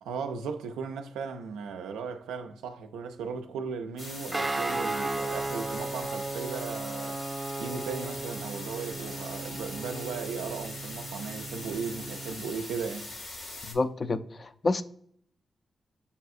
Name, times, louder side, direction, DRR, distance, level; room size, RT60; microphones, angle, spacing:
voice 1, 0.0-7.2 7.6-13.1, right 5 dB, 90° right, 0.3 m, -36 dB
sound 1, 4.0-13.7, left 2 dB, 85° left, 1.2 m, -41 dB
Guitar, 4.3-12.4, right 2 dB, 25° right, 0.5 m, -35 dB
voice 2, 13.7-14.8, left 3 dB, 50° left, 0.3 m, -28 dB
6.7 x 2.7 x 2.4 m
supercardioid pair, 40°, 0 cm